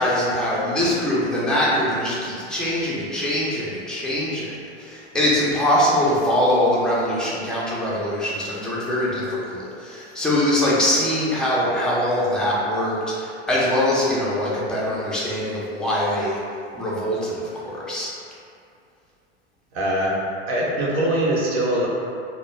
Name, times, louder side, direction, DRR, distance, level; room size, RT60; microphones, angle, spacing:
voice 1, 0.0-16.4 16.7-18.1, left 1 dB, ahead, -7 dB, 0.4 m, -23 dB
voice 2, 19.7-20.2 20.5-21.9, right 1 dB, 70° right, -4 dB, 0.7 m, -22 dB
2.2 x 2.0 x 3.0 m, 2.4 s
hypercardioid pair, 95°, 33 cm